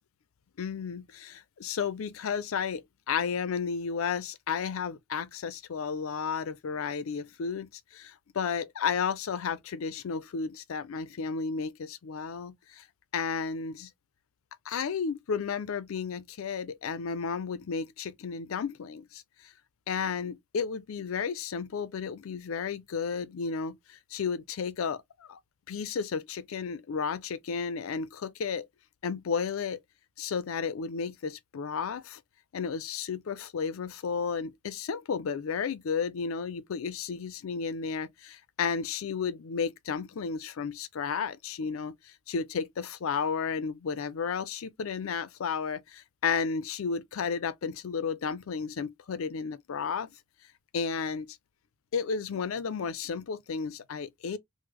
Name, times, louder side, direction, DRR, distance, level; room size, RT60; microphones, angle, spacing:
voice 1, 0.6-12.8 13.1-13.9 14.7-19.5 19.9-25.4 25.7-28.7 29.0-29.8 30.2-32.2 32.5-50.1 50.7-51.4 51.9-54.4, left 6 dB, 80° left, 0.4 m, -33 dB
3.1 x 2.0 x 3.4 m
head